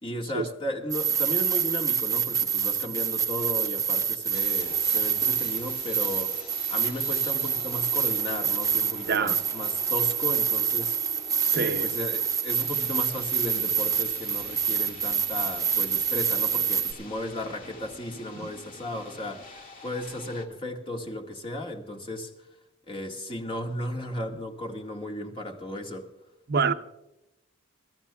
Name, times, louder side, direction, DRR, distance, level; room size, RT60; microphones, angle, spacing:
voice 1, 0.0-6.3 6.7-11.0 11.5-22.3 22.9-26.1, left 1 dB, 25° left, 1.8 m, -35 dB
sound 1, 0.9-16.9, right 8 dB, 15° right, 0.8 m, -27 dB
sound 2, 4.3-20.5, left 2 dB, 45° left, 2.1 m, -46 dB
voice 2, 11.4-11.9 18.3-18.5 26.5-26.7, right 5 dB, 55° right, 0.8 m, -26 dB
27.5 x 14.0 x 2.3 m
head